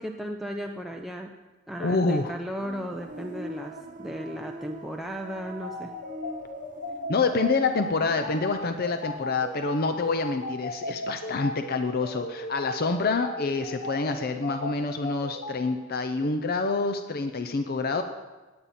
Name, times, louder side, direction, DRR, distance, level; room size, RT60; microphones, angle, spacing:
voice 1, 0.0-1.3 1.7-5.9, equal, ahead, 1 dB, 0.6 m, -35 dB
voice 2, 1.8-2.3 7.1-18.0, left 3 dB, 45° left, 7 dB, 0.6 m, -27 dB
sound 1, 2.6-9.4 9.7-10.5, right 1 dB, 40° right, 0.8 m, -43 dB
sound 2, 5.6-15.5, left 1 dB, 80° left, 2.8 m, -35 dB
19.0 x 8.7 x 4.3 m, 1.2 s
head